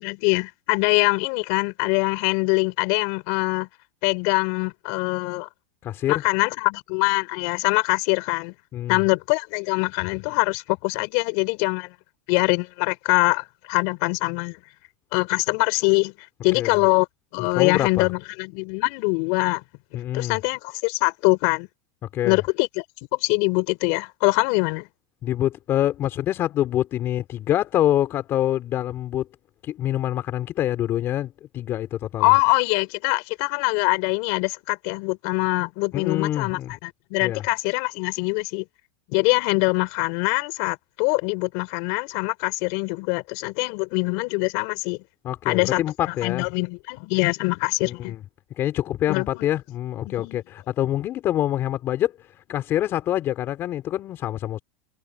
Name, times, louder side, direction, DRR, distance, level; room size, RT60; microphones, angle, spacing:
voice 1, 0.0-3.7 4.0-5.5 6.1-8.5 8.9-12.0 12.3-14.6 15.1-16.1 16.4-17.1 17.3-19.6 20.1-21.7 22.2-22.8 23.1-24.9 32.2-38.7 39.1-45.0 45.5-48.1 49.1-49.3 50.0-50.4, left 33 dB, 55° left, 5.3 m, -23 dB
voice 2, 5.8-6.2 8.7-9.0 16.5-16.8 17.4-18.1 19.9-20.4 22.1-22.4 25.2-29.3 29.6-32.3 35.9-36.7 37.2-37.4 45.2-46.4 47.8-48.2 48.6-52.1 52.5-54.6, left 12 dB, 35° left, 4.3 m, -25 dB
supercardioid pair, 125°, 7 cm